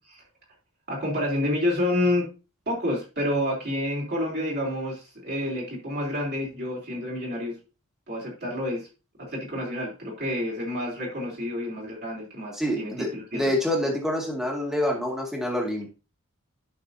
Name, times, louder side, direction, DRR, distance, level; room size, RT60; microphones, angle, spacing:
voice 1, 0.9-2.3 2.7-7.6 8.1-8.9 9.2-13.4, left 1 dB, 50° right, -3 dB, 3.3 m, -29 dB
voice 2, 12.5-15.9, left 1 dB, ahead, 0 dB, 2.0 m, -27 dB
11.0 x 5.8 x 2.7 m, 0.31 s
head